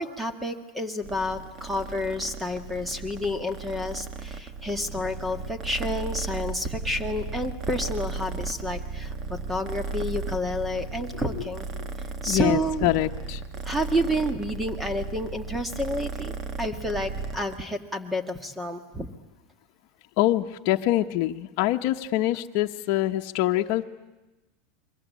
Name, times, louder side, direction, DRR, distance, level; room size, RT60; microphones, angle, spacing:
voice 1, 0.0-11.7 12.2-12.9 13.6-16.3 16.6-19.1, equal, 5° right, 7 dB, 1.7 m, -30 dB
Purr, 1.0-17.6, right 4 dB, 30° right, 1.5 m, -35 dB
voice 2, 12.3-13.4 20.2-23.8, left 15 dB, 55° left, 3 dB, 1.1 m, -25 dB
29.5 x 22.5 x 8.4 m, 1.1 s
supercardioid pair, 155°, 0 cm